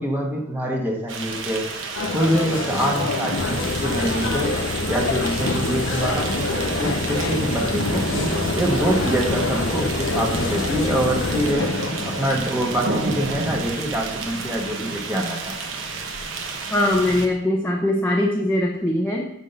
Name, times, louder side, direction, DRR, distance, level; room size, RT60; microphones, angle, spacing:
voice 1, 0.0-1.6 2.1-4.5 4.9-8.1 8.5-11.7 12.0-15.6, equal, 10° right, -1 dB, 1.3 m, -25 dB
sound 1, 1.1-17.3, right 3 dB, 75° right, 1.1 m, -30 dB
sound 2, 1.9-12.4, left 3 dB, 85° left, 0.9 m, -28 dB
sound 3, 3.3-11.5, left 3 dB, 60° left, 0.6 m, -29 dB
voice 2, 16.7-19.2, left 1 dB, 10° left, -2 dB, 0.9 m, -21 dB
9.9 x 3.7 x 6.6 m, 0.80 s
head